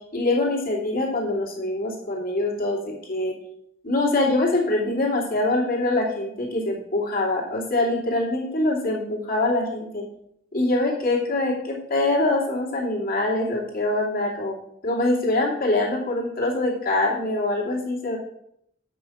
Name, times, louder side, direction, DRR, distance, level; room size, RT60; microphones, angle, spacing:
voice 1, 0.1-3.3 3.8-10.0 10.5-14.6 14.8-18.2, left 2 dB, 50° left, -2 dB, 2.7 m, -24 dB
8.0 x 6.1 x 6.2 m, 0.75 s
head